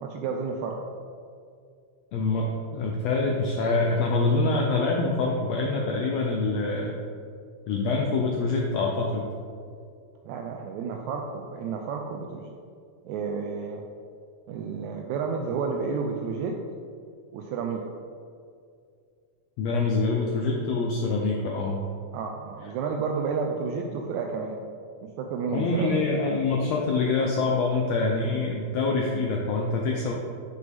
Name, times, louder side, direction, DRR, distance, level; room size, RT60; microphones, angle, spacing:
voice 1, 0.0-0.8 10.3-12.6 13.1-13.8 14.5-16.6 17.3-17.9 22.1-24.6 25.0-26.1, right 5 dB, 80° right, 2 dB, 1.8 m, -31 dB
voice 2, 2.1-7.0 7.7-9.3 19.6-21.8 25.5-30.1, left 3 dB, 75° left, -1 dB, 1.6 m, -25 dB
6.8 x 6.6 x 3.5 m, 2.3 s
omnidirectional pair, 3.5 m